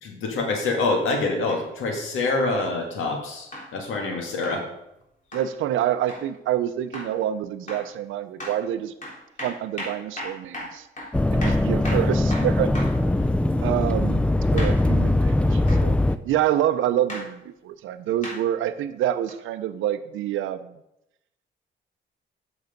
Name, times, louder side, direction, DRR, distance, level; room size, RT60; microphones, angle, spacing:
voice 1, 0.0-4.7, left 3 dB, 85° left, 2 dB, 1.9 m, -26 dB
sound 1, 1.5-1.7 2.6-2.8 3.5-3.7 4.4-4.6 5.3-5.5 6.1-6.3 6.9-7.2 7.7-7.9 8.4-8.6 9.0-13.0 14.6-14.8 15.7-15.9 17.1-17.3 18.2-18.4 19.3-19.4, left 1 dB, 40° left, 3.4 m, -36 dB
voice 2, 5.3-8.9 9.4-10.9 11.3-13.0 13.6-14.3 14.5-16.0 16.2-20.8, right 11 dB, 85° right, 12 dB, 0.6 m, -27 dB
sound 2, 11.1-16.2, left 1 dB, 5° left, 0.4 m, -21 dB
8.1 x 6.3 x 5.2 m, 0.85 s
cardioid pair, 90°, 20 cm